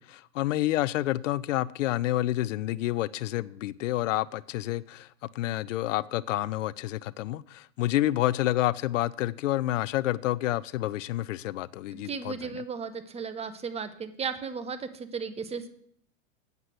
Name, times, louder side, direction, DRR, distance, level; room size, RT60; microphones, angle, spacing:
voice 1, 0.0-5.1 5.3-12.6, left 15 dB, 70° left, 0.5 m, -29 dB
voice 2, 11.9-15.7, right 5 dB, 15° right, 0.8 m, -35 dB
8.1 x 7.3 x 7.8 m
hypercardioid pair, 115°, 40 cm